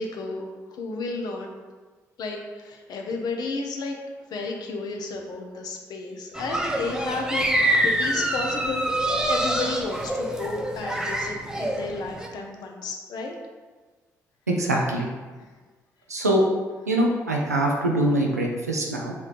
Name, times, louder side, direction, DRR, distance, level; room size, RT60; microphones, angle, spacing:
voice 1, 0.0-1.5 2.2-4.0 4.3-7.5 7.8-13.3, left 3 dB, 55° left, 2 dB, 0.6 m, -32 dB
sound 1, 6.3-12.3, right 1 dB, 10° right, 0.5 m, -26 dB
voice 2, 14.5-15.1 16.1-16.4 16.9-19.1, right 1 dB, 85° right, -1 dB, 0.4 m, -23 dB
4.2 x 3.1 x 2.5 m, 1.4 s
figure-of-eight pair, 40°, 8 cm